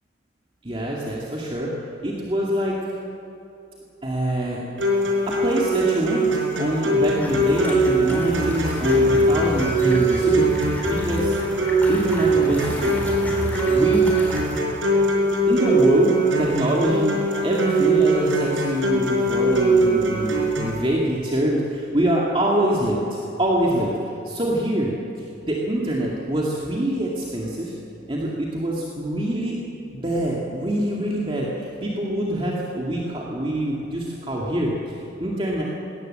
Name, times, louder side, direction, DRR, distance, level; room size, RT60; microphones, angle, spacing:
voice 1, 0.6-1.7 2.0-2.9 4.0-4.6 5.3-6.3 6.6-10.4 10.9-11.3 11.9-12.9 13.4-14.1 14.5-14.6 15.5-23.9 24.2-24.9 25.4-27.7 28.1-29.6 29.9-35.6, right 1 dB, 25° right, -4 dB, 2.2 m, -24 dB
sound 1, 4.8-20.8, right 2 dB, 90° right, 5.1 m, -21 dB
sound 2, 7.2-14.6, left 1 dB, 10° left, 3.8 m, -32 dB
20.5 x 17.5 x 7.7 m, 2.9 s
head